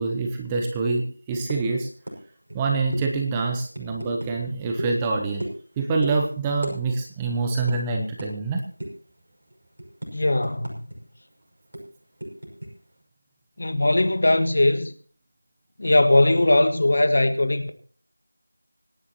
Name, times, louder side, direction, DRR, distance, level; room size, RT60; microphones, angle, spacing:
voice 1, 0.0-1.9 2.5-5.4 5.8-8.6, right 3 dB, 10° right, 0.7 m, -26 dB
sound 1, 1.5-1.7 2.1-2.2 2.5-2.6 2.9-3.1 3.7-4.3 4.8-5.0 5.4-5.7 6.0-6.2 6.6-6.8 7.0-7.2 7.7-7.8 8.2-8.3 8.8-9.1 9.5-11.0 11.2-11.3 11.7-12.7, right 1 dB, 60° right, 5.8 m, -33 dB
voice 2, 10.1-10.9 13.6-14.9 15.8-17.7, left 1 dB, 50° left, 1.6 m, -20 dB
25.0 x 10.5 x 2.9 m
figure-of-eight pair, 175°, 0 cm